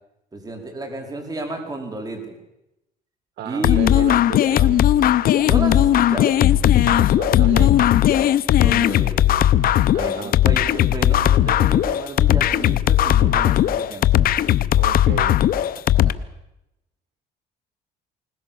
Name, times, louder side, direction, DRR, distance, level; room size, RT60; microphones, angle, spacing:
voice 1, 0.3-2.4 3.4-4.1 5.4-6.4 8.6-9.4 9.9-14.3 16.0-16.1, right 2 dB, 20° right, 3 dB, 4.8 m, -32 dB
voice 2, 3.4-4.8 6.8-7.9 9.9-10.4 14.7-15.4, right 10 dB, 75° right, 11 dB, 1.9 m, -34 dB
sound 1, 3.6-16.1, left 12 dB, 60° left, 0.8 m, -17 dB
21.0 x 20.0 x 7.1 m, 0.88 s
cardioid pair, 110°, 17 cm